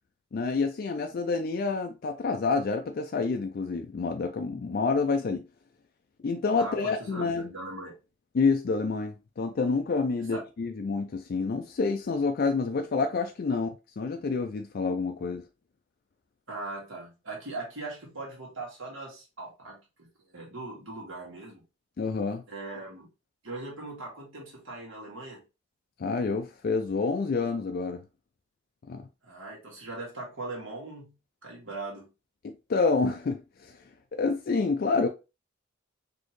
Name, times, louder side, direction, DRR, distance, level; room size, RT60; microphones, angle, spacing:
voice 1, 0.3-5.4 6.2-7.5 8.3-13.7 14.0-15.4 22.0-22.4 26.0-28.0 28.9-29.1 32.4-33.8 34.1-35.1, left 4 dB, 50° left, 0.4 m, -28 dB
voice 2, 6.6-7.9 10.3-10.4 16.5-21.6 22.5-23.1 23.4-25.4 29.2-31.2 31.4-32.1, right 2 dB, 85° right, 1.7 m, -40 dB
4.2 x 2.8 x 3.0 m
head